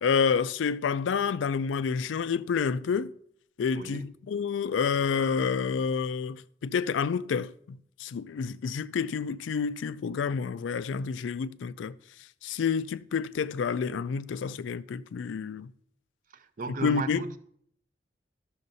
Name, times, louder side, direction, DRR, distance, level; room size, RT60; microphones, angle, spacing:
voice 1, 0.0-3.1 3.6-12.0 12.4-15.7 16.8-17.2, left 6 dB, 75° left, 0.3 m, -29 dB
voice 2, 16.3-17.4, right 3 dB, 45° right, 0.6 m, -34 dB
12.0 x 6.4 x 4.0 m
head